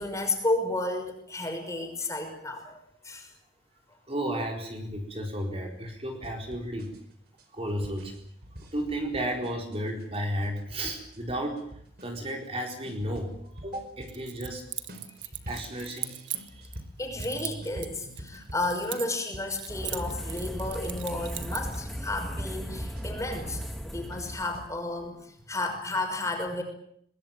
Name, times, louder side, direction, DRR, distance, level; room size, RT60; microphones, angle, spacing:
voice 1, 0.0-2.8 3.0-3.3 17.0-26.6, left 2 dB, 15° left, 4 dB, 6.0 m, -32 dB
voice 2, 4.1-6.9 7.5-8.1 8.7-11.6 12.0-13.4 13.6-14.6 15.5-16.7, right 1 dB, 35° right, 2 dB, 4.4 m, -33 dB
sound 1, 6.2-20.7 21.2-24.7, equal, 55° right, 4.5 m, -46 dB
Keys jangling, 14.1-16.8 17.2-19.3 19.5-21.8, right 14 dB, 90° right, 1.6 m, -38 dB
sound 2, 19.7-24.7, equal, ahead, 2.1 m, -37 dB
23.5 x 21.0 x 9.0 m, 0.69 s
head